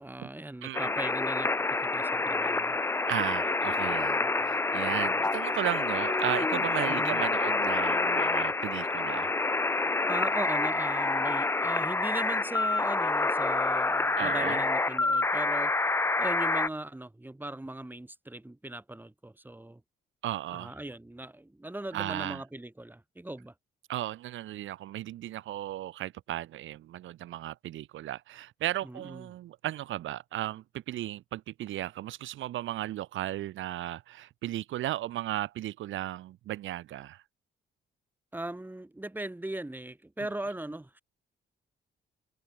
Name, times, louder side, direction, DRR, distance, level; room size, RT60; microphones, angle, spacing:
voice 1, 0.0-1.5 1.8-2.8 4.2-4.6 6.9-7.2 10.1-15.7 16.2-19.8 20.5-23.5 28.8-29.3 38.3-41.0, right 1 dB, 10° right, 3.6 m, -39 dB
voice 2, 0.6-0.9 3.1-9.3 14.2-14.6 20.2-20.8 21.9-22.4 23.9-37.2, right 14 dB, 80° right, 1.2 m, -35 dB
sound 1, 0.7-16.7, left 3 dB, 10° left, 0.4 m, -28 dB
cardioid pair, 90°, 20 cm